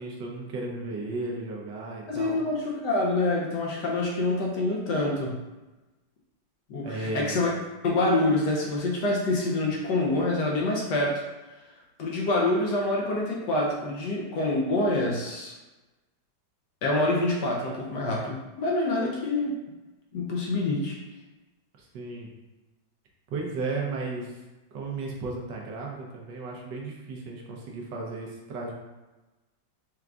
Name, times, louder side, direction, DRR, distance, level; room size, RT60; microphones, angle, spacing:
voice 1, 0.0-2.4 6.8-7.4 21.8-22.3 23.3-24.4 24.7-28.7, right 3 dB, 70° right, -2 dB, 1.3 m, -34 dB
voice 2, 2.1-5.4 6.7-7.5 7.8-11.2 12.0-15.5 16.8-19.6 20.1-21.0, left 2 dB, 70° left, -2 dB, 1.2 m, -26 dB
4.7 x 3.7 x 2.3 m, 1.1 s
omnidirectional pair, 2.1 m